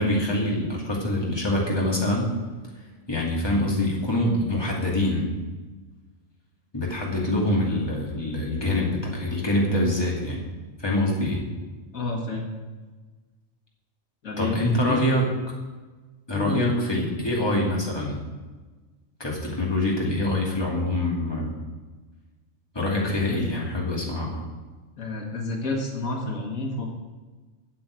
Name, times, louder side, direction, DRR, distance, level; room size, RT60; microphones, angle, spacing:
voice 1, 0.0-2.3 3.1-5.3 6.7-10.4 10.8-11.4 14.4-15.3 16.3-18.2 19.2-21.5 22.7-24.4, left 1 dB, 20° left, -3 dB, 2.5 m, -25 dB
voice 2, 11.9-12.5 14.2-15.0 16.3-16.7 23.3-23.4 25.0-26.8, left 2 dB, 85° left, 0 dB, 2.2 m, -29 dB
8.4 x 7.7 x 8.3 m, 1.3 s
omnidirectional pair, 1.4 m